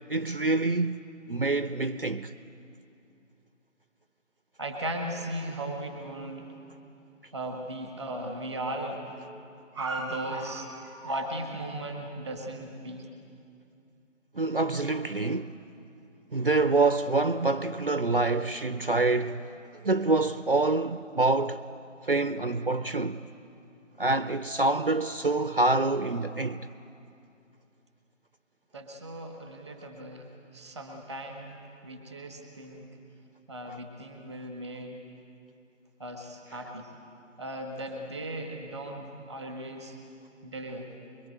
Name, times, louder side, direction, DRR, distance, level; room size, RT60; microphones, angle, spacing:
voice 1, 0.1-1.0 1.3-2.3 14.4-15.6 16.3-19.5 19.8-21.6 22.0-23.2 24.0-26.7 33.7-33.8, right 2 dB, 45° right, 0.5 m, -26 dB
voice 2, 4.6-6.6 7.3-9.2 9.7-13.1 28.7-32.9 33.5-35.0 36.0-36.9 37.4-40.0 40.4-40.9, right 1 dB, 5° left, 1.0 m, -37 dB
24.0 x 22.0 x 9.2 m
figure-of-eight pair, 160°, 38 cm